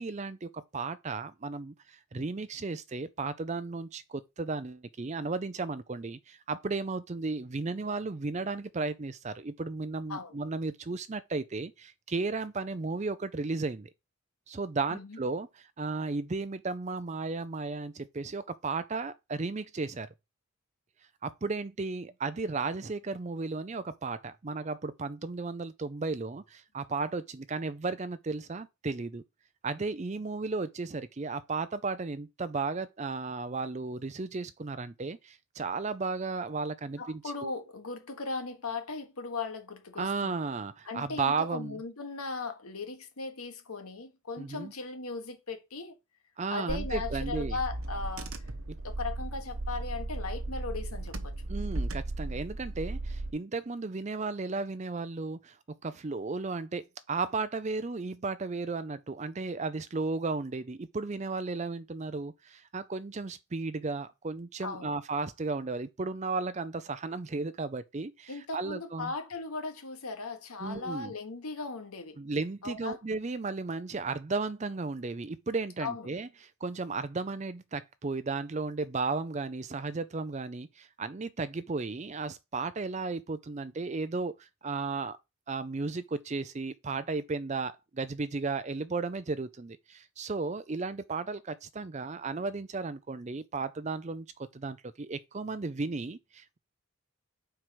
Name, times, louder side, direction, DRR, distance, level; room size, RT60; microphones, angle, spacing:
voice 1, 0.0-13.9 14.5-15.5 15.8-20.1 21.2-29.2 29.6-37.5 40.0-41.8 44.4-44.7 46.4-47.6 51.5-55.6 55.8-69.1 70.6-71.1 72.2-76.3 76.6-85.2 85.5-96.6, right 3 dB, 30° right, 0.4 m, -34 dB
voice 2, 37.0-40.4 40.9-46.0 46.5-48.3 48.8-51.3 64.6-64.9 68.3-72.2 72.6-73.0 75.8-76.1, left 3 dB, 85° left, 1.4 m, -38 dB
Car / Engine, 46.7-53.3, right 2 dB, 70° right, 1.0 m, -36 dB
4.8 x 4.6 x 5.7 m
head